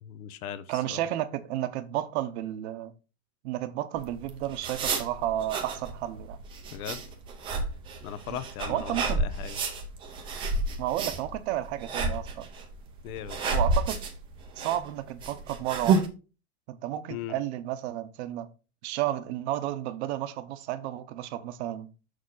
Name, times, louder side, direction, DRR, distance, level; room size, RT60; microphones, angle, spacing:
voice 1, 0.0-1.0 6.7-7.0 8.0-9.6 13.0-13.5 17.1-17.3, left 10 dB, 80° left, 1.0 m, -38 dB
voice 2, 0.7-2.9 3.4-6.4 8.3-8.4 8.7-9.2 10.8-12.5 13.5-14.0 14.6-16.0 16.7-18.5 18.8-21.9, right 13 dB, 50° right, 0.8 m, -32 dB
sound 1, 4.0-16.1, right 3 dB, 10° right, 0.4 m, -31 dB
6.6 x 6.4 x 3.8 m
supercardioid pair, 175°, 43 cm